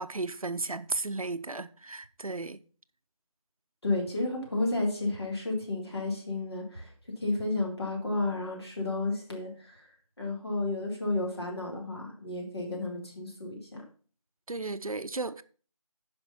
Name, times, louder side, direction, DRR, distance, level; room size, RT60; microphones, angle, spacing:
voice 1, 0.0-2.6 14.5-15.4, right 3 dB, 75° right, 0.7 m, -34 dB
voice 2, 3.8-6.9 7.2-9.8 10.2-13.8, left 2 dB, 45° left, 3.6 m, -32 dB
10.5 x 5.3 x 5.6 m
figure-of-eight pair, 170°, 18 cm